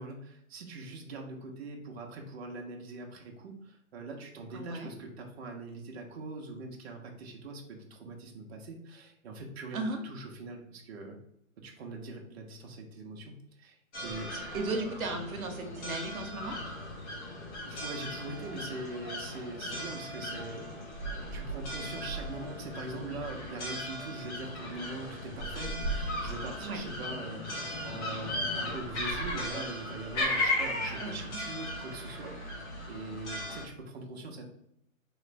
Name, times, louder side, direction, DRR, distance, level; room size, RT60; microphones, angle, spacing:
voice 1, 0.0-11.2 11.6-13.3 13.6-13.8 14.0-14.3 17.7-20.7 21.3-34.5, right 2 dB, 50° right, 1 dB, 0.8 m, -42 dB
voice 2, 4.5-4.9 9.7-10.0 14.3-16.6 26.6-26.8 30.9-31.4, right 3 dB, 90° right, 5 dB, 0.8 m, -36 dB
sound 1, 13.9-33.7, left 1 dB, 55° left, 1.4 m, -36 dB
3.2 x 3.0 x 3.2 m, 0.74 s
hypercardioid pair, 150°, 41 cm